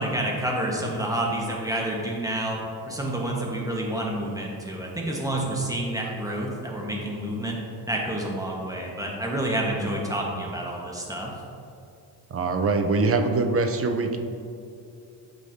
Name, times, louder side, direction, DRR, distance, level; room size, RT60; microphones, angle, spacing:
voice 1, 0.0-2.6 2.8-7.6 7.9-11.4, right 1 dB, 10° right, -2 dB, 1.4 m, -29 dB
voice 2, 12.3-14.2, right 3 dB, 30° right, 6 dB, 0.6 m, -23 dB
8.3 x 5.5 x 2.8 m, 2.6 s
supercardioid pair, 75°, 44 cm